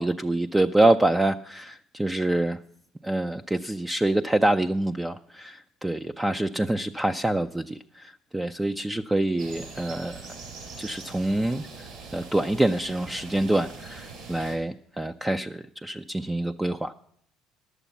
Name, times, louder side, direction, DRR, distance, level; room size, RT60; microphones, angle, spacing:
voice 1, 0.0-2.6 3.0-10.2 10.8-11.9 12.1-16.9, right 1 dB, 10° right, 7 dB, 0.4 m, -26 dB
sound 1, 9.4-14.6, right 4 dB, 65° right, 4.2 m, -42 dB
11.0 x 8.1 x 7.1 m, 0.66 s
supercardioid pair, 75°, 0 cm